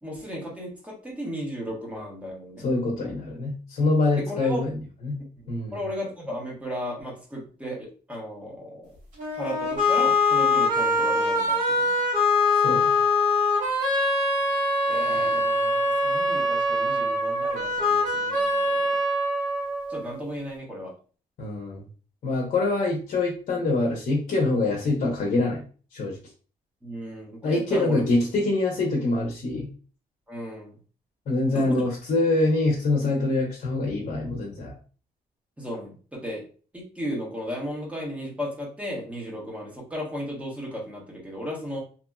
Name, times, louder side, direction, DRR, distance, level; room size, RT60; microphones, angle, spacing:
voice 1, 0.0-2.7 4.3-4.6 5.4-8.9 9.3-11.9 14.9-19.0 19.9-20.9 26.8-28.0 30.3-30.7 31.5-31.6 33.3-33.4 35.6-36.4 36.7-41.8, equal, 10° right, -3 dB, 1.2 m, -35 dB
voice 2, 2.6-4.7 5.0-5.2 5.5-5.8 12.6-12.9 21.4-21.8 22.2-25.6 25.9-26.2 27.4-29.7 31.3-34.7, left 2 dB, 60° left, -2 dB, 0.8 m, -25 dB
sound 1, 9.2-20.2, left 2 dB, 60° right, 1.5 m, -23 dB
2.9 x 2.6 x 2.3 m, 0.39 s
cardioid pair, 125°, 15 cm